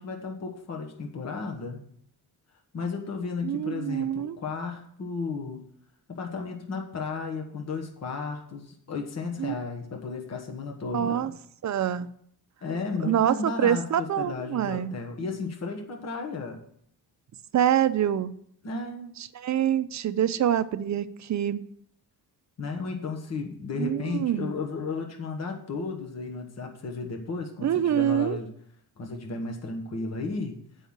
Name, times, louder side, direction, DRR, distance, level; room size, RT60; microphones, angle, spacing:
voice 1, 0.0-1.8 2.7-5.7 6.1-11.3 12.6-16.6 18.6-19.1 22.6-28.5 29.0-30.6, left 4 dB, 40° left, 2 dB, 1.3 m, -34 dB
voice 2, 3.4-4.4 9.4-9.5 10.9-11.3 11.6-12.1 13.0-15.0 17.5-18.4 19.2-21.7 23.8-24.6 27.6-28.4, right 10 dB, 50° right, 13 dB, 0.5 m, -26 dB
8.1 x 5.5 x 7.2 m, 0.66 s
wide cardioid pair, 170°, 38 cm